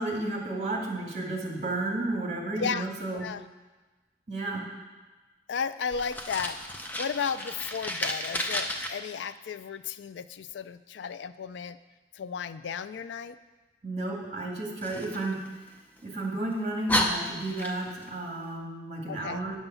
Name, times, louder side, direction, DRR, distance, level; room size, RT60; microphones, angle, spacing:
voice 1, 0.0-3.3 4.3-4.6 13.8-15.4 16.0-19.5, right 2 dB, 35° right, -2 dB, 2.1 m, -32 dB
voice 2, 5.5-6.6 7.0-11.8 12.1-13.4 19.1-19.4, left 6 dB, 80° left, 13 dB, 0.4 m, -34 dB
Fire, 5.9-8.9 14.8-16.0 16.5-16.6 16.9-18.1, left 1 dB, 10° left, 0.6 m, -32 dB
9.9 x 5.4 x 6.9 m, 1.2 s
head